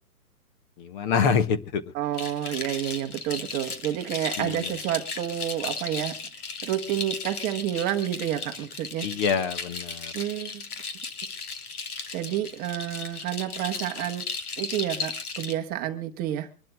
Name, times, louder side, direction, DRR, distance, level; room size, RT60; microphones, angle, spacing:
voice 1, 0.8-1.8 4.4-4.7 9.0-10.1, left 6 dB, 30° left, 12 dB, 1.0 m, -26 dB
voice 2, 1.9-6.2 6.6-9.1 10.1-10.6 12.1-14.2 14.6-16.5, right 12 dB, 20° right, 6 dB, 0.9 m, -29 dB
sound 1, 2.1-15.5, left 4 dB, 75° left, 2.7 m, -36 dB
25.0 x 12.0 x 2.3 m, 0.38 s
hypercardioid pair, 135°, 45 cm